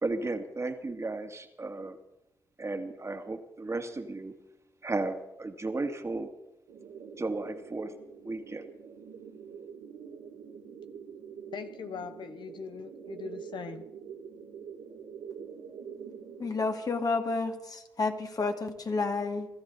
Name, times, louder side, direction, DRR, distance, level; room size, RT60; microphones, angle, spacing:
voice 1, 0.0-2.0 2.6-4.3 4.8-6.3 7.2-7.9 8.2-8.6, right 2 dB, 35° right, 6 dB, 2.2 m, -34 dB
sound 1, 6.7-16.7, right 7 dB, 80° right, 3.2 m, -45 dB
voice 2, 11.5-13.9, left 6 dB, 60° left, 9 dB, 0.9 m, -41 dB
voice 3, 16.4-19.5, left 3 dB, 45° left, 4 dB, 2.5 m, -30 dB
25.0 x 13.5 x 4.1 m, 0.88 s
hypercardioid pair, 40°, 9 cm